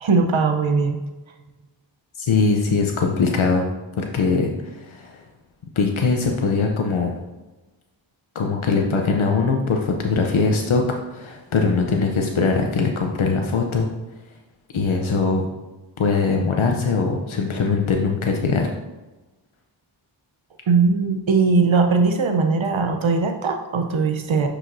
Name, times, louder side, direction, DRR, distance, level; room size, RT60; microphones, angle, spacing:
voice 1, 0.0-1.0 20.7-24.5, right 4 dB, 80° right, 5 dB, 0.8 m, -19 dB
voice 2, 2.2-3.7 4.0-5.2 5.8-7.2 8.3-10.8 11.1-13.9 14.7-15.4 16.0-18.7, left 4 dB, 85° left, 2 dB, 0.8 m, -21 dB
9.8 x 5.0 x 2.6 m, 1.1 s
wide cardioid pair, 50°, 47 cm